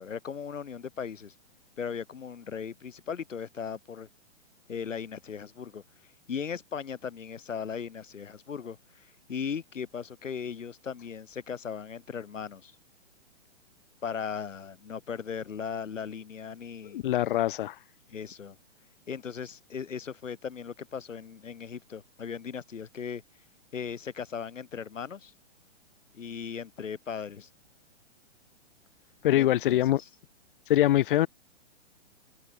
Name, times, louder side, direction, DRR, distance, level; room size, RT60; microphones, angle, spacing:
voice 1, 0.0-1.3 1.8-4.1 4.7-5.8 6.3-12.7 14.0-17.0 18.1-18.6 19.1-23.2 23.7-25.3 26.1-27.5 29.3-30.1, left 7 dB, 90° left, 7.2 m, -38 dB
voice 2, 16.9-17.8 29.2-30.0 30.7-31.3, left 13 dB, 45° left, 2.8 m, -23 dB
hypercardioid pair, 160°, 37 cm